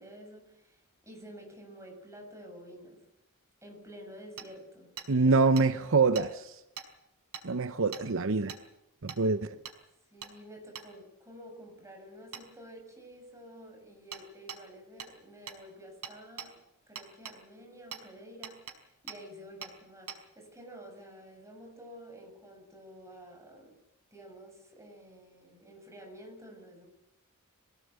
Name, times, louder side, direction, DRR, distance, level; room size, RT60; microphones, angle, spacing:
voice 1, 0.0-3.1 3.6-4.9 5.2-5.5 10.1-23.8 24.1-26.9, equal, 15° right, 7.3 m, -50 dB
Hammer, 4.4-4.5 5.0-5.1 5.6-5.7 6.1-6.3 6.8-6.9 7.3-7.5 7.9-8.0 8.5-8.6 9.1-9.2 9.6-9.8 10.2-10.3 10.7-10.9 12.3-12.4 14.1-14.2 14.5-14.6 15.0-15.1 15.5-15.6 16.0-16.5 17.0-17.4 17.9-18.0 18.4-18.8 19.1-19.2 19.6-19.7 20.1-20.2, right 7 dB, 90° right, 5.0 m, -42 dB
voice 2, 5.1-6.6 7.4-8.5 9.0-9.5, right 4 dB, 65° right, 0.8 m, -25 dB
24.0 x 18.0 x 8.3 m
head